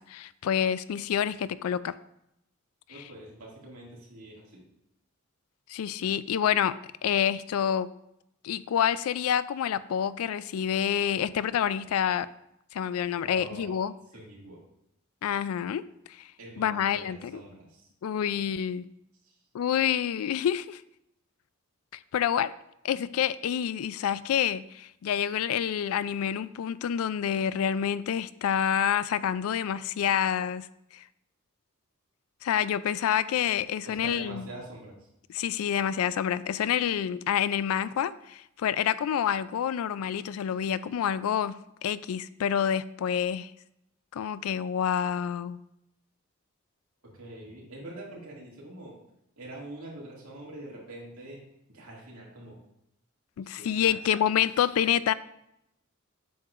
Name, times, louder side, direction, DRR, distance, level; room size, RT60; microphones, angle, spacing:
voice 1, 0.0-1.9 5.7-6.7 7.0-7.9 8.4-12.3 12.7-13.9 15.2-15.8 16.1-16.2 16.6-17.4 18.0-18.9 19.5-20.8 22.1-22.5 22.8-30.7 30.9-31.0 32.4-34.5 35.3-43.5 44.1-45.6 53.4-55.1, left 9 dB, 80° left, 16 dB, 0.3 m, -28 dB
voice 2, 2.9-4.6 13.2-13.8 14.1-14.6 16.4-17.9 19.2-19.4 33.8-35.1 47.0-49.0 49.4-52.6 53.4-54.5, right 2 dB, 90° right, -4 dB, 2.2 m, -45 dB
7.9 x 6.5 x 2.5 m, 0.80 s
head